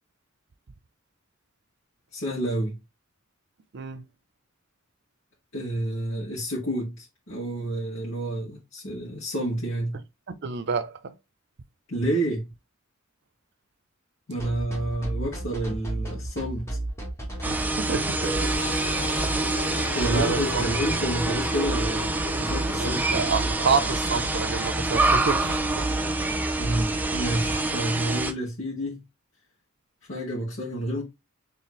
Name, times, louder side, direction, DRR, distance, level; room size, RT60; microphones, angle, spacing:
voice 1, 2.1-2.8 5.5-10.0 11.9-12.5 14.3-16.8 19.9-23.5 26.5-29.0 30.1-31.0, right 1 dB, 75° left, 1.7 m, -29 dB
voice 2, 3.7-4.0 10.3-11.2 17.5-19.0 20.1-20.7 22.8-26.5, right 5 dB, 55° right, 0.6 m, -29 dB
sound 1, 14.4-27.6, right 1 dB, 15° left, 1.3 m, -33 dB
sound 2, 17.4-28.3, right 2 dB, 10° right, 0.4 m, -27 dB
sound 3, 18.2-23.1 23.3-23.4, left 2 dB, 35° left, 0.9 m, -37 dB
4.4 x 3.3 x 3.1 m
head